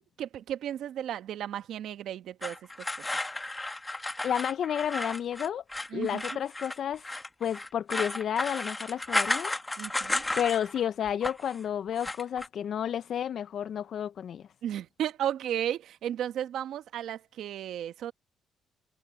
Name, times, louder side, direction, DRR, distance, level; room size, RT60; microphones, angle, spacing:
voice 1, 0.2-2.6 5.9-6.4 9.8-10.2 14.6-18.1, right 10 dB, 75° right, 1.1 m, -34 dB
sound 1, 2.4-10.8 11.1-11.6 11.9-12.5, left 2 dB, 15° left, 1.5 m, -33 dB
voice 2, 4.2-5.6 5.9-7.1 7.4-9.5 10.4-14.4, left 9 dB, 65° left, 0.5 m, -31 dB
cardioid pair, 90°, 0 cm